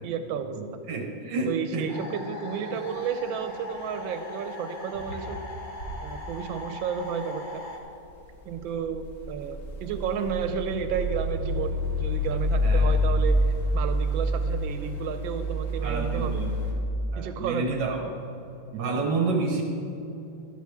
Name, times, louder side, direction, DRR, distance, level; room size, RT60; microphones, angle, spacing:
voice 1, 0.0-0.6 1.5-5.4 6.0-7.6 8.5-13.4 13.7-16.4 17.2-17.9, right 7 dB, 85° right, 8 dB, 1.4 m, -32 dB
voice 2, 0.6-1.9 12.6-12.9 15.8-16.5 17.1-18.1 18.7-19.6, right 3 dB, 70° right, 2 dB, 1.6 m, -29 dB
sound 1, 1.9-7.8, left 2 dB, 30° left, 1.0 m, -40 dB
sound 2, 2.7-3.0 3.3-4.0 4.3-4.4 4.9-5.9 8.1-16.7, equal, 50° left, 2.0 m, -27 dB
12.0 x 11.5 x 3.5 m, 2.9 s
omnidirectional pair, 2.1 m